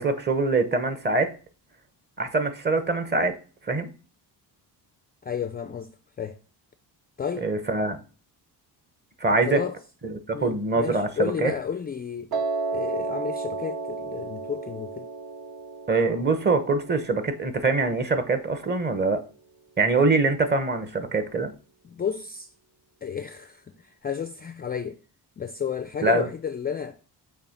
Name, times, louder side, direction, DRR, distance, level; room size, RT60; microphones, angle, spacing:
voice 1, 0.0-1.3 2.2-3.4 3.7-3.9 7.4-8.0 9.2-9.6 10.0-11.5 15.9-19.2 19.8-21.5 26.0-26.3, right 3 dB, 25° right, 0.9 m, -24 dB
voice 2, 5.2-5.9 6.2-6.4 7.2-7.5 9.3-9.8 10.3-12.3 12.7-15.1 21.8-22.5 23.0-25.0 25.4-27.0, left 7 dB, 25° left, 0.3 m, -32 dB
Piano, 12.3-18.5, right 3 dB, 55° right, 1.5 m, -33 dB
6.8 x 2.9 x 5.7 m
cardioid pair, 120°, 42 cm